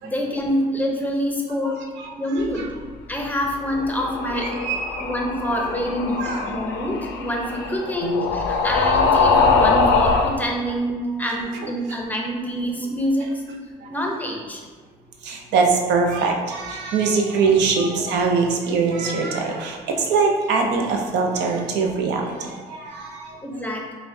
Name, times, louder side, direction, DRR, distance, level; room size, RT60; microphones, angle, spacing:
voice 1, 0.0-1.8 2.2-2.6 3.1-4.5 5.0-13.6 13.9-14.6 17.6-17.7 23.4-23.9, equal, 10° left, 0 dB, 0.6 m, -26 dB
sound 1, 3.7-10.4, left 4 dB, 85° left, 0.4 m, -22 dB
voice 2, 4.4-5.0 6.2-6.6 8.0-8.1 13.8-13.9 15.2-23.4, right 4 dB, 85° right, 2 dB, 0.5 m, -22 dB
5.4 x 2.2 x 2.6 m, 1.5 s
cardioid pair, 95°, 17 cm